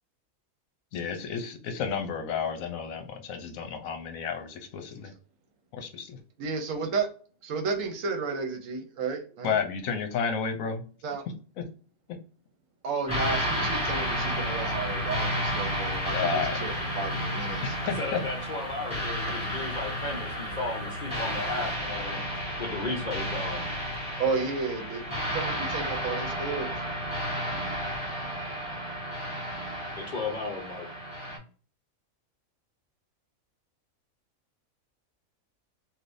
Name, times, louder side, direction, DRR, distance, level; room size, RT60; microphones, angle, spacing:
voice 1, 0.9-5.1 5.7-6.2 9.4-10.8 11.6-11.7 16.1-16.6 17.6-18.2, left 6 dB, 75° left, 5 dB, 1.1 m, -31 dB
voice 2, 6.4-7.1 7.4-9.5 11.0-11.2 12.8-17.8 24.2-25.0 25.3-27.1 27.5-27.7, right 4 dB, 70° right, 5 dB, 1.0 m, -32 dB
sound 1, 13.1-31.4, equal, 5° right, 1.2 m, -32 dB
voice 3, 18.0-22.2 22.6-23.7 29.9-30.9, left 3 dB, 50° left, -2 dB, 0.6 m, -35 dB
3.3 x 2.5 x 2.5 m, 0.39 s
omnidirectional pair, 1.5 m